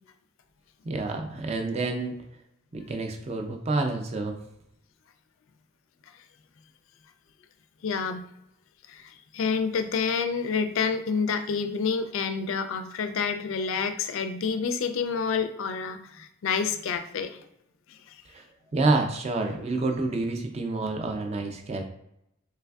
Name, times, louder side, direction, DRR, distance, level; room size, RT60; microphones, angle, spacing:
voice 1, 0.8-2.2 2.7-4.4 18.3-18.4 18.7-21.8, right 3 dB, 30° right, 4 dB, 0.4 m, -28 dB
voice 2, 7.8-8.3 8.9-17.4 17.9-18.2, left 5 dB, 70° left, 8 dB, 0.4 m, -28 dB
3.3 x 3.2 x 2.3 m, 0.81 s
head